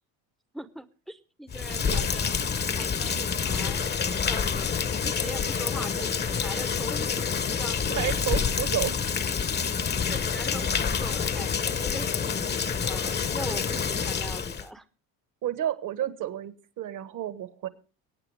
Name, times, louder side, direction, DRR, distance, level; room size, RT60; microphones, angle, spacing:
voice 1, 0.5-2.4 2.8-3.8 4.3-4.7 5.0-7.3 7.5-8.2 10.1-14.9, right 1 dB, ahead, 12 dB, 0.8 m, -41 dB
Rain, 1.5-14.7, left 6 dB, 25° left, 0.9 m, -28 dB
voice 2, 7.8-8.9 15.4-17.7, right 11 dB, 55° right, 12 dB, 1.5 m, -31 dB
23.5 x 8.8 x 3.4 m, 0.35 s
cardioid pair, 110°, 38 cm